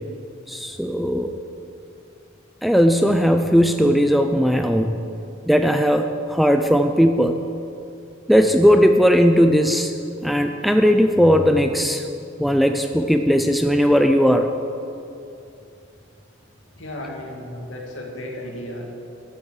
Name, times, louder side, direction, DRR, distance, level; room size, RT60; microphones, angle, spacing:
voice 1, 0.5-1.3 2.6-5.1 5.5-7.4 8.3-9.9 10.2-12.0 12.4-14.5, equal, ahead, 6 dB, 0.4 m, -17 dB
voice 2, 16.8-18.9, left 1 dB, 70° left, -1 dB, 2.3 m, -34 dB
12.5 x 8.8 x 6.5 m, 2.6 s
head